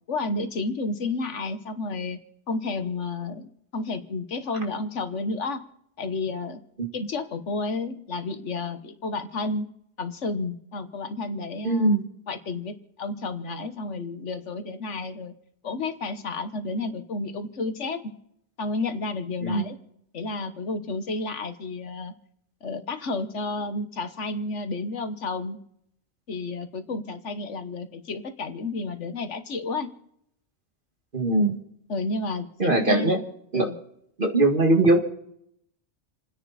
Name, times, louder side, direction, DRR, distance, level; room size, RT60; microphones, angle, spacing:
voice 1, 0.1-2.2 2.5-5.6 6.0-6.6 6.9-9.7 10.0-12.0 12.3-15.3 15.6-18.1 18.6-19.8 20.1-22.1 22.6-25.6 26.3-29.9 31.9-33.3 33.5-33.8, left 3 dB, 85° left, 9 dB, 1.6 m, -31 dB
voice 2, 11.6-12.0 19.4-19.7 31.1-31.6 32.6-33.2 33.5-33.7 34.2-35.0, right 2 dB, 45° right, 3 dB, 2.2 m, -20 dB
29.5 x 10.0 x 4.2 m, 0.73 s
omnidirectional pair, 1.2 m